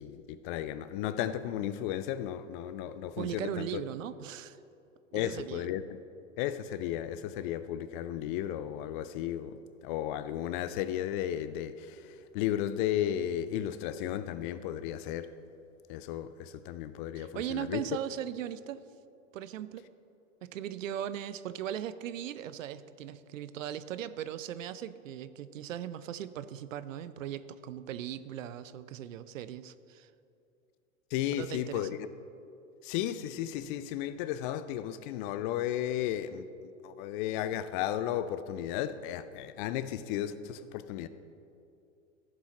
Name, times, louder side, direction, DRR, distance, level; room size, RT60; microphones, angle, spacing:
voice 1, 0.0-3.8 5.1-5.8 6.4-15.3 15.9-17.8 31.1-32.0 32.8-36.5 36.8-41.1, left 11 dB, 40° left, 0.4 m, -34 dB
voice 2, 3.2-4.6 5.1-5.6 17.2-18.8 19.3-19.9 20.4-30.1 31.3-32.0, right 10 dB, 75° right, 0.5 m, -38 dB
14.5 x 7.5 x 3.1 m
hypercardioid pair, 100°, 39 cm